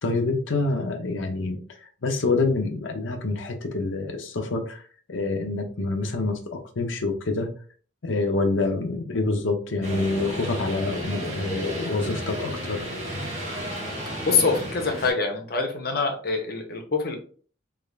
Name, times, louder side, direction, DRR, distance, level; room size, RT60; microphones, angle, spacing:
voice 1, 0.0-4.8 5.1-7.5 8.0-12.9, left 3 dB, 85° left, 5 dB, 0.7 m, -27 dB
sound 1, 9.8-15.1, equal, 40° right, 1.4 m, -32 dB
voice 2, 14.2-17.2, left 4 dB, 55° left, 3 dB, 0.8 m, -25 dB
3.6 x 3.2 x 2.3 m, 0.42 s
head